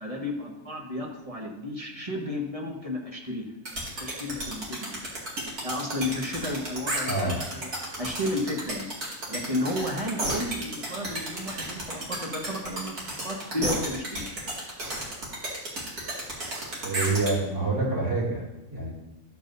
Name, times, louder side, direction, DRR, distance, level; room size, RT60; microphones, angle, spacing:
voice 1, 0.0-3.5 4.0-5.0 5.6-7.7 8.0-8.9 9.3-14.2, left 1 dB, 25° right, -1 dB, 1.2 m, -32 dB
sound 1, 3.6-17.3, right 1 dB, 75° right, 2.7 m, -32 dB
voice 2, 7.0-7.4 16.8-18.4 18.7-18.9, right 3 dB, 50° right, -6 dB, 3.0 m, -27 dB
13.0 x 7.2 x 2.7 m, 0.99 s
omnidirectional pair, 1.6 m